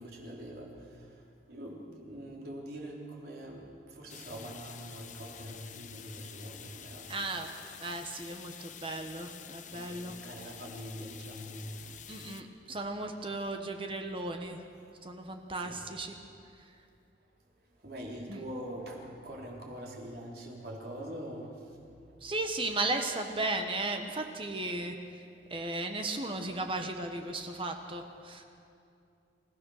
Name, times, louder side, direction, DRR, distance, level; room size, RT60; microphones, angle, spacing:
voice 1, 0.0-7.3 9.6-12.0 15.5-15.9 17.4-22.2, equal, 60° right, -2 dB, 4.1 m, -44 dB
sound 1, 4.1-12.4, left 8 dB, 45° left, 1.0 m, -49 dB
voice 2, 7.1-7.5 7.8-10.1 12.1-14.6 15.0-16.1 18.3-18.4 22.2-25.0 25.5-28.4, right 2 dB, 30° right, 5 dB, 1.3 m, -35 dB
27.0 x 16.5 x 6.6 m, 2.6 s
head